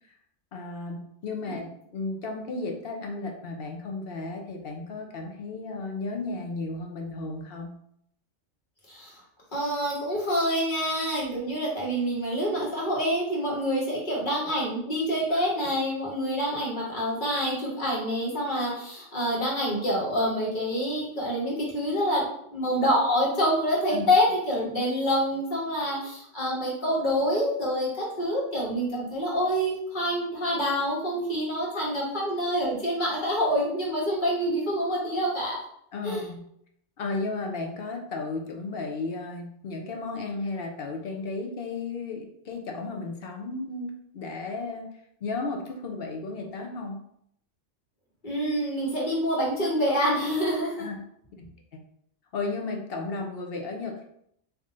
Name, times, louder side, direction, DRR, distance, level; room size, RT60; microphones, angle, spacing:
voice 1, 0.5-7.7 12.5-12.7 15.3-15.4 23.9-24.1 35.9-36.4 37.0-44.9 45.2-47.0 50.8-51.0 51.4-51.8 52.3-54.0, left 3 dB, 55° left, 2 dB, 0.8 m, -34 dB
voice 2, 9.5-35.6 36.0-36.2 48.2-50.9, equal, 40° left, -5 dB, 1.5 m, -27 dB
3.7 x 2.8 x 3.7 m, 0.71 s
omnidirectional pair, 1.3 m